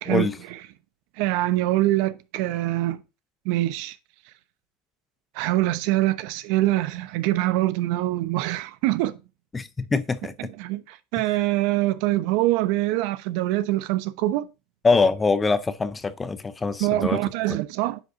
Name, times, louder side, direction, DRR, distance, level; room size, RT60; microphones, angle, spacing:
voice 1, 0.0-0.6 1.2-3.0 3.4-4.0 5.3-9.2 10.4-14.5 16.8-18.0, right 16 dB, 65° right, 0.8 m, -24 dB
voice 2, 9.5-10.3 14.8-17.2, left 4 dB, 15° left, 0.6 m, -23 dB
9.8 x 5.2 x 2.6 m
supercardioid pair, 125°, 0 cm